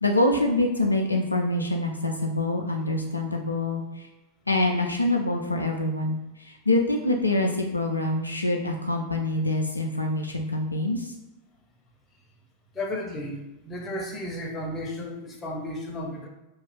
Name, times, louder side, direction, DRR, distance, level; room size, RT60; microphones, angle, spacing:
voice 1, 0.0-4.1 4.5-11.1, left 2 dB, 85° left, 1 dB, 0.3 m, -25 dB
voice 2, 12.7-13.4 13.6-16.3, left 1 dB, 20° left, 0 dB, 0.6 m, -33 dB
2.9 x 2.3 x 3.1 m, 1.0 s
figure-of-eight pair, 90°, 0 cm